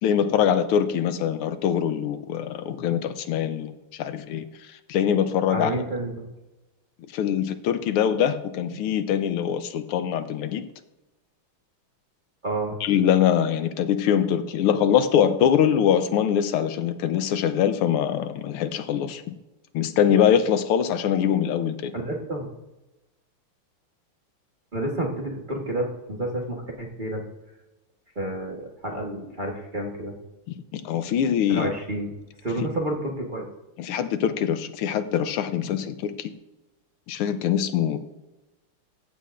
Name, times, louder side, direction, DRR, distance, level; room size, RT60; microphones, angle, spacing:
voice 1, 0.0-3.7 4.0-4.5 4.9-5.7 7.1-10.6 12.8-19.2 19.7-21.9 30.5-31.7 33.8-36.3 37.1-38.0, left 9 dB, 90° left, 10 dB, 1.6 m, -23 dB
voice 2, 5.5-6.3 12.4-12.8 21.9-22.5 24.7-27.2 28.1-30.2 31.5-32.1 32.4-33.5, right 1 dB, 30° right, -1 dB, 1.1 m, -30 dB
15.0 x 8.4 x 2.5 m, 1.0 s
omnidirectional pair, 2.4 m